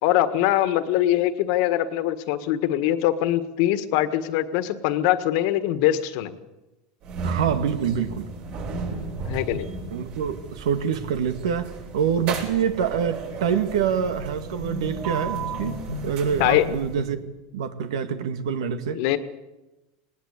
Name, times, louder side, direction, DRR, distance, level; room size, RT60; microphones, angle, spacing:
voice 1, 0.0-6.3 9.2-9.7 16.4-16.7 18.9-19.2, left 13 dB, 60° left, 1.6 m, -22 dB
sound 1, 7.0-17.2, right 3 dB, 50° right, 7.2 m, -34 dB
voice 2, 7.2-8.3 9.9-17.3 17.5-19.0, right 7 dB, 90° right, 1.9 m, -26 dB
19.0 x 18.5 x 8.3 m
supercardioid pair, 140°, 3 cm